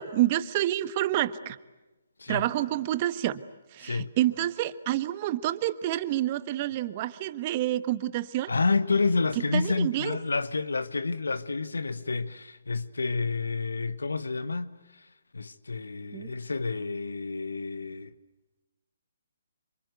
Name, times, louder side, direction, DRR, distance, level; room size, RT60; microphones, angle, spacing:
voice 1, 0.0-1.6 2.3-3.4 3.7-8.5 9.4-10.2 16.1-16.3, right 14 dB, 35° right, 1.2 m, -28 dB
voice 2, 3.8-4.1 8.5-15.1 15.3-18.1, left 4 dB, 80° left, 1.2 m, -29 dB
28.0 x 25.0 x 8.1 m
figure-of-eight pair, 140°, 0 cm